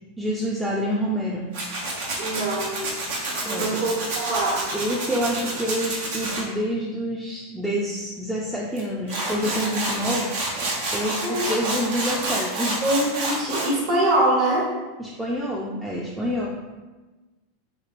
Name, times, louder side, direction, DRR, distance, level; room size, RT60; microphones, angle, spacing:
voice 1, 0.2-1.5 3.5-3.8 4.7-12.9 15.0-16.5, equal, 5° right, -5 dB, 0.4 m, -27 dB
Tools, 1.5-6.4 8.8-8.9 9.1-13.7, right 2 dB, 70° right, 0.7 m, -28 dB
voice 2, 2.2-2.8 3.4-4.6 11.2-11.4 12.8-14.7, right 1 dB, 50° right, -4 dB, 1.3 m, -23 dB
3.0 x 2.9 x 2.4 m, 1.2 s
hypercardioid pair, 95°, 0 cm